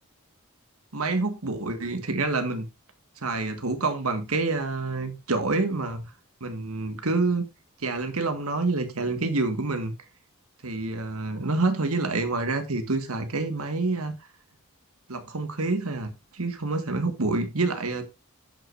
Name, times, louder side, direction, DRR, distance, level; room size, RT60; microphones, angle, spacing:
voice 1, 0.9-2.7 3.2-6.1 6.4-7.5 7.8-9.9 10.6-14.1 15.1-18.1, right 3 dB, 70° right, 1.7 m, -27 dB
11.0 x 8.5 x 2.6 m
head